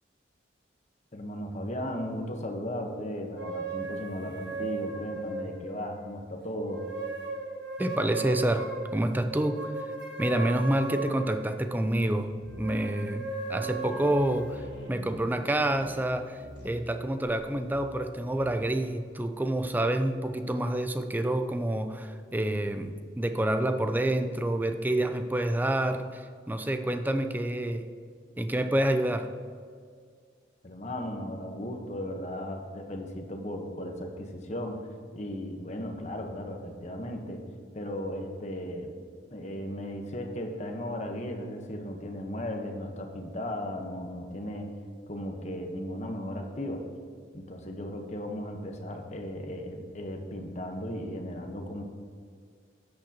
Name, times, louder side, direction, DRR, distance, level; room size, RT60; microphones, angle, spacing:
voice 1, 1.1-6.8 30.6-34.8 35.1-37.4 37.7-38.9 39.3-44.7 45.1-46.8 47.3-51.8, left 1 dB, 40° left, 3 dB, 1.1 m, -36 dB
sound 1, 3.4-6.1 6.7-11.8 12.4-14.9, right 3 dB, 65° right, 1.5 m, -37 dB
voice 2, 7.8-9.7 10.2-12.3 12.6-27.9 28.4-29.3, right 1 dB, 10° right, 8 dB, 0.4 m, -28 dB
sound 2, 12.3-12.9 13.2-13.3 13.5-18.9, left 1 dB, 70° left, 1.6 m, -45 dB
13.5 x 8.8 x 2.9 m, 2.1 s
head